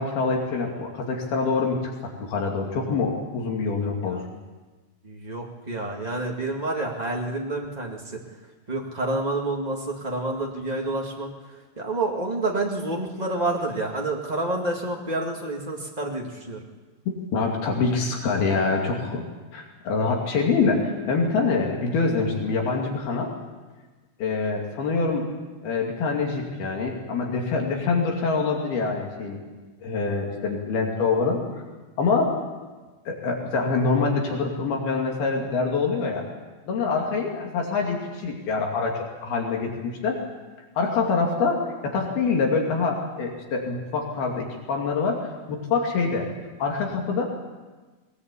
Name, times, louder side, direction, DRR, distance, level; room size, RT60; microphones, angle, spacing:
voice 1, 0.0-4.2 17.3-23.3 24.2-25.3 25.6-29.4 29.8-31.4 32.0-32.3 33.1-36.2 36.6-40.2 40.8-45.2 45.5-46.3 46.6-47.2, left 4 dB, 65° left, 0 dB, 4.3 m, -25 dB
voice 2, 5.0-8.0 8.7-11.3 11.8-16.6, right 2 dB, 80° right, -1 dB, 0.3 m, -28 dB
21.0 x 19.5 x 8.4 m, 1.3 s
omnidirectional pair, 4.8 m